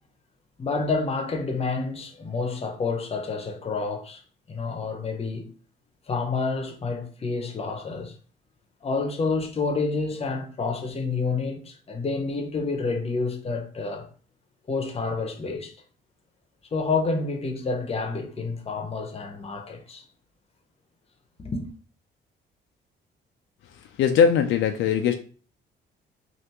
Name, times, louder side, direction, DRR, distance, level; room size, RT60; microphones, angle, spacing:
voice 1, 0.6-4.2 4.5-5.5 6.1-8.1 8.8-14.1 14.7-15.7 16.7-20.0 21.4-21.6, left 4 dB, 30° left, 0.7 m, -29 dB
voice 2, 24.0-25.2, left 7 dB, 75° left, 0.4 m, -20 dB
3.4 x 2.5 x 2.8 m
cardioid pair, 90°, 20 cm